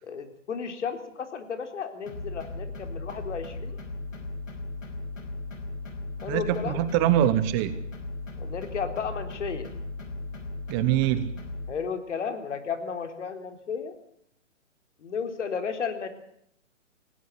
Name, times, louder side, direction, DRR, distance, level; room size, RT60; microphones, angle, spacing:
voice 1, 0.0-3.8 6.2-6.8 8.4-9.7 11.7-13.9 15.0-16.1, left 6 dB, 65° left, 8 dB, 3.9 m, -33 dB
sound 1, 2.1-11.7, left 2 dB, 90° left, 5.3 m, -37 dB
voice 2, 6.3-7.7 10.7-11.3, right 12 dB, 20° right, 13 dB, 0.9 m, -24 dB
18.5 x 17.0 x 8.3 m, 0.72 s
hypercardioid pair, 150°, 38 cm